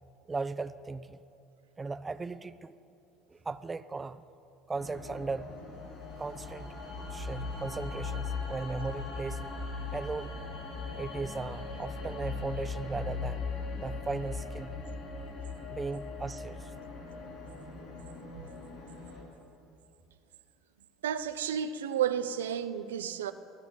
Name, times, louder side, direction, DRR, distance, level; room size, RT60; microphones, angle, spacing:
voice 1, 0.3-1.2 1.8-2.7 3.3-4.2 4.7-5.5 6.2-6.7 7.1-9.4 9.9-10.3 11.0-13.5 13.8-14.7 15.7-16.7, right 3 dB, 20° right, 13 dB, 0.9 m, -37 dB
sound 1, 4.7-19.2, left 4 dB, 75° left, 7.2 m, -39 dB
voice 2, 21.0-23.3, right 9 dB, 90° right, 10 dB, 0.9 m, -31 dB
23.5 x 16.0 x 8.7 m, 2.7 s
hypercardioid pair, 75°, 0 cm